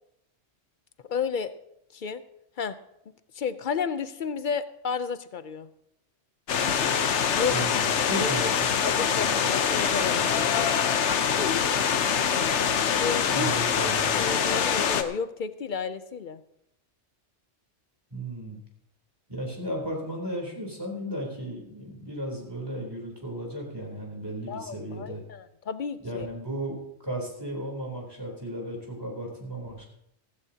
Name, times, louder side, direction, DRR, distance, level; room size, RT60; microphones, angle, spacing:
voice 1, 1.1-1.5 1.9-2.2 2.6-2.8 3.3-5.7 7.3-7.6 8.2-8.5 8.8-10.7 11.4-11.6 13.0-13.5 13.8-16.4 24.5-26.3, left 6 dB, 55° left, 12 dB, 0.7 m, -32 dB
sound 1, 6.5-15.0, left 7 dB, 75° left, 1.1 m, -24 dB
voice 2, 7.5-8.7 13.3-14.2 18.1-18.6 19.3-25.2 26.0-26.8 27.0-29.9, right 1 dB, 20° right, -1 dB, 3.4 m, -35 dB
15.5 x 15.5 x 2.8 m, 0.79 s
omnidirectional pair, 1.2 m